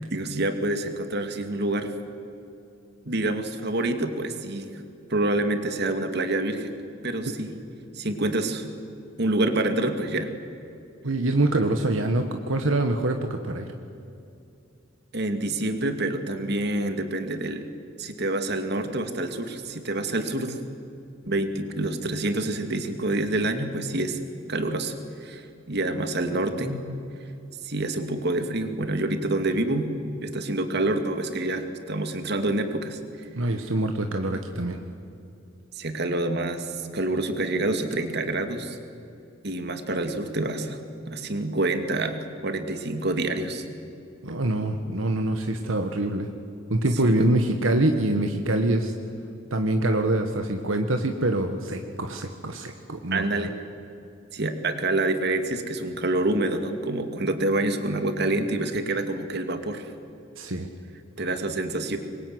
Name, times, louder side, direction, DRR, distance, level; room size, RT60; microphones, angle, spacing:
voice 1, 0.1-1.9 3.1-4.7 5.1-6.8 7.0-7.6 7.9-8.7 9.2-10.3 15.1-17.7 18.0-20.6 21.3-24.2 24.5-24.9 25.2-26.8 27.6-29.9 30.2-33.3 35.7-38.8 39.4-40.8 41.1-42.2 42.4-43.6 47.0-47.3 53.1-53.5 54.3-59.9 61.2-62.0, right 2 dB, 55° right, 7 dB, 2.5 m, -27 dB
voice 2, 11.0-13.7 33.3-34.8 44.2-46.3 46.7-48.9 49.5-53.5 60.4-60.7, right 1 dB, 80° right, 5 dB, 1.6 m, -25 dB
26.0 x 22.0 x 9.5 m, 2.7 s
head